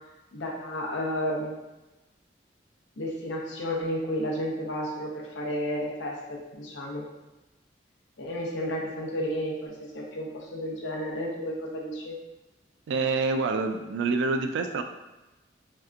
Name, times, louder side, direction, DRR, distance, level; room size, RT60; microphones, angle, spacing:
voice 1, 0.3-1.6 3.0-7.1 8.2-12.2, equal, 90° left, -1 dB, 0.7 m, -32 dB
voice 2, 12.9-14.8, right 3 dB, 75° right, 6 dB, 0.3 m, -27 dB
3.3 x 2.7 x 2.4 m, 1.1 s
head